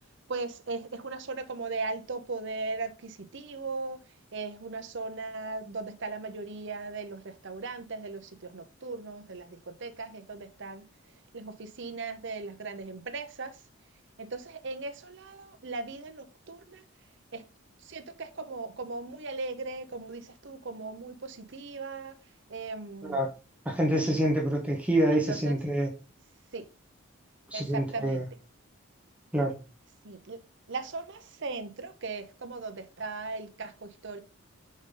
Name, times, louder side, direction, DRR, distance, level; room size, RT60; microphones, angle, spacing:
voice 1, 0.3-4.0 4.3-10.8 11.3-13.6 14.2-16.8 17.3-17.4 17.8-22.2 22.5-23.3 25.1-25.6 26.5-26.7 27.5-28.2 30.0-30.4 30.7-34.2, right 3 dB, 55° right, 0.7 m, -38 dB
voice 2, 23.6-25.9 27.5-28.2 29.3-29.6, right 1 dB, 5° right, 1.0 m, -26 dB
5.2 x 5.2 x 3.8 m
head